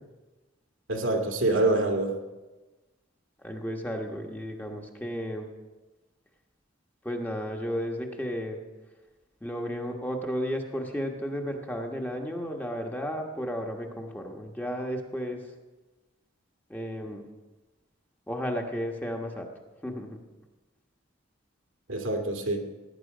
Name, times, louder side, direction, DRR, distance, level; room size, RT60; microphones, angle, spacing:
voice 1, 0.9-2.1 21.9-22.7, right 2 dB, 90° right, 2 dB, 2.0 m, -26 dB
voice 2, 3.4-5.5 7.0-8.6 9.4-15.4 16.7-17.2 18.3-19.5 19.8-20.2, equal, 10° left, 2 dB, 1.2 m, -33 dB
17.0 x 9.7 x 5.0 m, 1.2 s
head